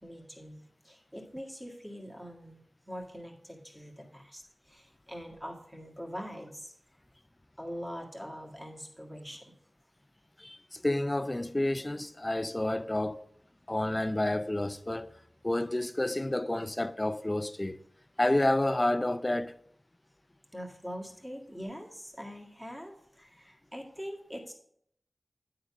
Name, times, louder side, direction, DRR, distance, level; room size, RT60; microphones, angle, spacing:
voice 1, 0.0-6.7 7.6-9.5 20.5-24.5, equal, 10° right, 1.8 m, -43 dB
voice 2, 10.4-13.3 13.7-15.1 15.4-17.8 18.2-19.5, left 1 dB, 25° left, 0.4 m, -29 dB
9.6 x 3.9 x 6.1 m
wide cardioid pair, 65°, 0 cm